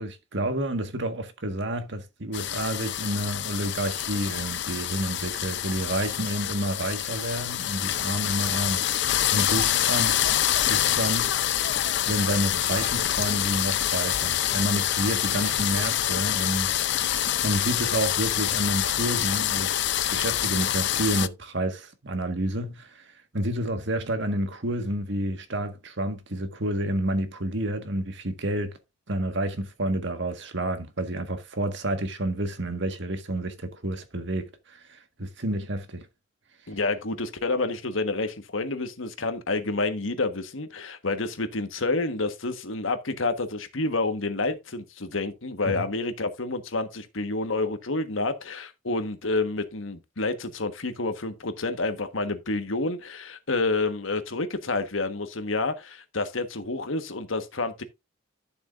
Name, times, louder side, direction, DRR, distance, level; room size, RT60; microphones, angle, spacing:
voice 1, 0.0-10.2 10.7-11.4 12.0-16.7 17.4-19.7 20.1-28.8 29.1-36.1 45.6-45.9, right 1 dB, 65° right, 1.7 m, -29 dB
sound 1, 2.3-21.3, left 11 dB, 60° left, 0.5 m, -26 dB
voice 2, 36.7-57.8, left 3 dB, 85° left, 1.5 m, -29 dB
12.0 x 7.0 x 2.6 m
head